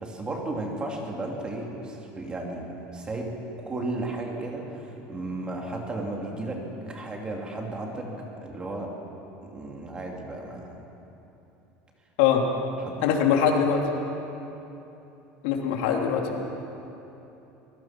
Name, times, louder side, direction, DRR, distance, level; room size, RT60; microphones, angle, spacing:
voice 1, 0.0-8.1 8.4-9.0 9.4-10.8 12.8-13.1, right 2 dB, 20° right, 0 dB, 2.8 m, -34 dB
voice 2, 13.0-13.8 15.4-16.4, left 7 dB, 80° left, 1 dB, 3.1 m, -22 dB
24.0 x 20.5 x 6.1 m, 3.0 s
cardioid pair, 140°, 5 cm